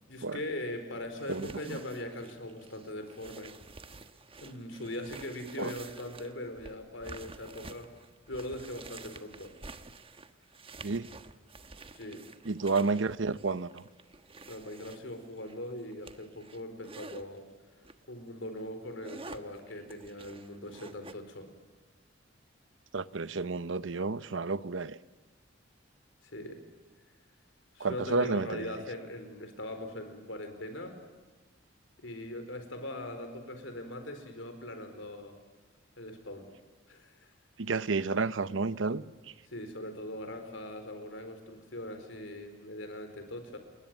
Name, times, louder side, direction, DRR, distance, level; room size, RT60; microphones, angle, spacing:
voice 1, 0.1-3.5 4.4-7.9 8.3-9.5 11.9-12.2 14.5-17.5 18.1-21.5 26.2-26.6 27.7-31.0 32.0-35.4 36.0-36.5 36.9-37.1 39.5-43.6, left 1 dB, 75° left, 4.7 m, -41 dB
sound 1, 1.2-17.2 17.8-18.1 18.5-21.1, right 3 dB, 30° right, 1.3 m, -50 dB
voice 2, 1.3-1.8 5.6-5.7 10.8-11.1 12.4-13.8 22.9-25.0 27.8-28.7 37.6-39.0, right 4 dB, 75° right, 0.9 m, -31 dB
30.0 x 21.5 x 9.2 m
head